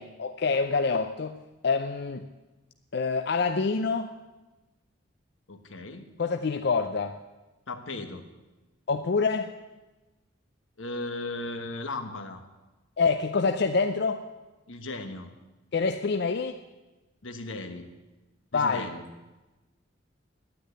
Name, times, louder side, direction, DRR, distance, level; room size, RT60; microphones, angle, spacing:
voice 1, 0.0-1.4 1.6-2.3 2.9-4.1 6.2-7.2 8.9-9.5 13.0-14.2 15.7-16.5 18.5-18.9, left 4 dB, 55° left, 8 dB, 0.5 m, -26 dB
voice 2, 5.5-6.1 7.7-8.3 10.8-12.4 14.7-15.4 17.2-17.9 18.5-19.1, left 2 dB, 85° left, 7 dB, 1.3 m, -37 dB
10.0 x 9.4 x 9.4 m, 1.1 s
head